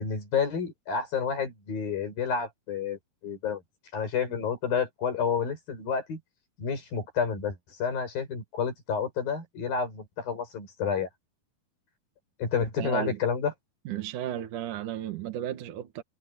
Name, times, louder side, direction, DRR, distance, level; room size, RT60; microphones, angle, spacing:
voice 1, 0.0-3.6 3.9-6.2 6.6-11.1 12.4-13.5, left 6 dB, 70° left, 7.8 m, -30 dB
voice 2, 12.8-13.2 13.8-16.0, right 11 dB, 65° right, 2.9 m, -34 dB
omnidirectional pair, 4.3 m